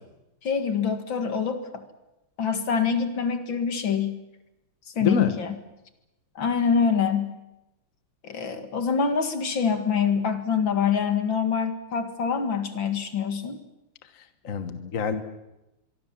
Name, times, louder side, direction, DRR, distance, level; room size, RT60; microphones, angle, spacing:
voice 1, 0.4-1.8 2.4-4.2 5.0-5.5 6.4-7.3 8.2-13.6, left 6 dB, 65° left, 7 dB, 2.7 m, -25 dB
voice 2, 5.0-5.3 14.2-15.2, left 5 dB, 45° left, 9 dB, 1.5 m, -27 dB
24.0 x 24.0 x 7.3 m, 0.96 s
omnidirectional pair, 2.3 m